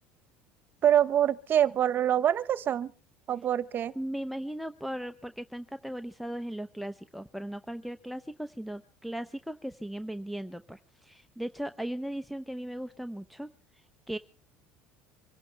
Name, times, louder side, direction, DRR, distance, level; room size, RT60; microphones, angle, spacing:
voice 1, 0.8-2.9 3.3-3.9, right 10 dB, 40° right, 1.1 m, -25 dB
voice 2, 3.9-14.2, right 1 dB, ahead, 0.7 m, -38 dB
25.5 x 11.5 x 4.6 m
supercardioid pair, 115°, 5 cm